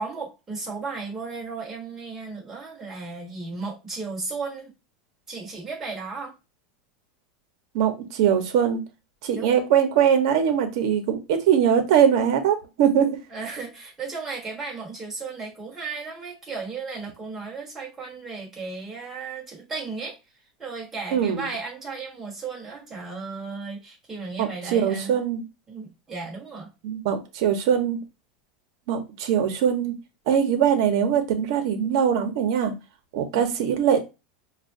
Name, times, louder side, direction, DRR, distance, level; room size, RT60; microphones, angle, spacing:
voice 1, 0.0-4.7 5.3-6.3 9.3-9.6 13.3-20.2 20.6-25.2 25.7-26.7 33.3-33.4, right 4 dB, 10° right, -2 dB, 1.2 m, -35 dB
voice 2, 7.7-8.8 9.2-13.2 21.1-21.5 24.4-25.4 26.8-28.0 28.9-29.9 30.3-32.7 33.1-34.0, right 8 dB, 55° right, 6 dB, 1.0 m, -22 dB
6.1 x 2.4 x 2.6 m, 0.27 s
supercardioid pair, 175°, 3 cm